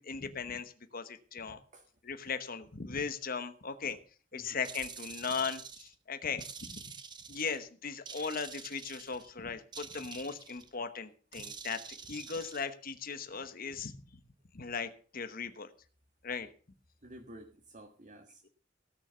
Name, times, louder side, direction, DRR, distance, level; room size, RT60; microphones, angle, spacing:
voice 1, 0.0-1.6 2.0-4.0 4.3-6.8 7.3-13.9 14.5-15.7 16.2-16.5, left 5 dB, 50° left, 9 dB, 1.1 m, -38 dB
sound 1, 4.6-5.9 6.4-7.6 8.1-9.3 9.7-10.7 11.3-12.7, right 6 dB, 25° right, 0.9 m, -47 dB
voice 2, 17.0-18.5, right 1 dB, 40° right, 2 dB, 1.7 m, -52 dB
17.0 x 6.7 x 6.7 m, 0.41 s
head